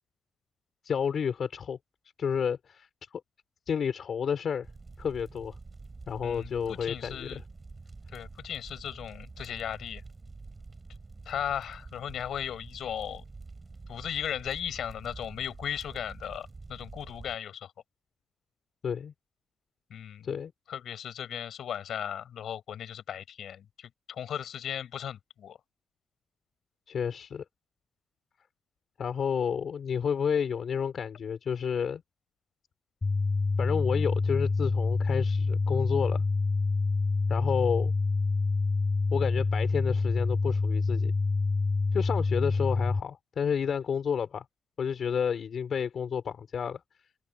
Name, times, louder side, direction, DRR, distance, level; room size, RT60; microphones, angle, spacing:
voice 1, 0.8-1.8 2.2-3.2 3.7-4.7 5.0-5.5 6.1-7.4 18.8-19.1 20.2-20.5 26.9-27.4 29.0-32.0 33.6-36.2 37.3-37.9 39.1-41.1 41.9-44.4 44.8-46.8, left 7 dB, 55° left, 4.3 m, -30 dB
sound 1, 4.6-17.3, right 3 dB, 25° right, 7.8 m, -47 dB
voice 2, 6.2-7.4 8.1-10.0 11.2-13.2 13.9-17.7 19.9-20.3 20.7-25.6, left 9 dB, 70° left, 8.0 m, -37 dB
sound 2, 33.0-43.0, left 3 dB, 25° left, 3.4 m, -27 dB
cardioid pair, 135°, 0 cm